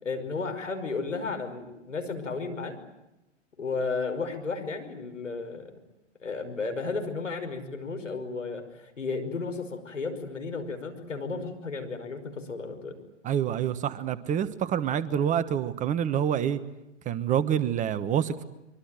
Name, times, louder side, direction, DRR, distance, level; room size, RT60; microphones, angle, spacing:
voice 1, 0.0-2.8 3.6-5.8 6.2-13.0, left 4 dB, 80° left, 5.5 m, -33 dB
voice 2, 13.2-16.6 17.0-18.4, right 9 dB, 20° right, 1.3 m, -27 dB
25.0 x 24.5 x 9.1 m
figure-of-eight pair, 115°, 37 cm